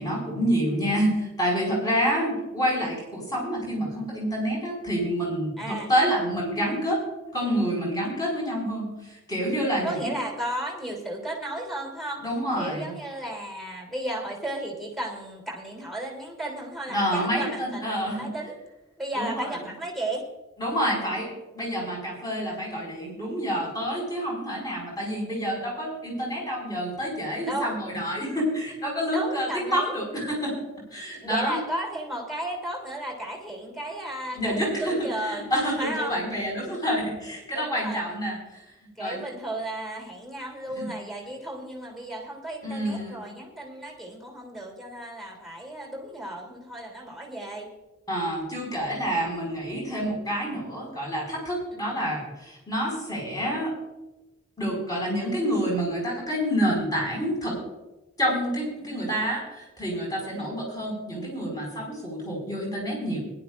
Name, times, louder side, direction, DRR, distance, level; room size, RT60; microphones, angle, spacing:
voice 1, 0.0-7.0 7.3-10.1 12.2-12.9 16.9-18.3 19.1-19.5 20.6-21.3 21.5-30.5 30.9-31.6 34.3-34.9 35.2-38.4 39.0-39.2 40.7-40.9 42.6-43.2 48.1-53.7 54.6-57.6 58.2-63.2, equal, 15° left, -2 dB, 5.1 m, -28 dB
voice 2, 5.6-6.0 9.8-12.2 12.6-18.5 19.0-20.2 27.4-27.8 29.1-29.9 31.2-35.5 35.8-36.1 37.5-38.0 39.0-47.7 51.7-51.9 58.8-59.1 60.2-60.5, right 1 dB, ahead, -1 dB, 3.0 m, -34 dB
21.0 x 11.5 x 2.5 m, 1.0 s
head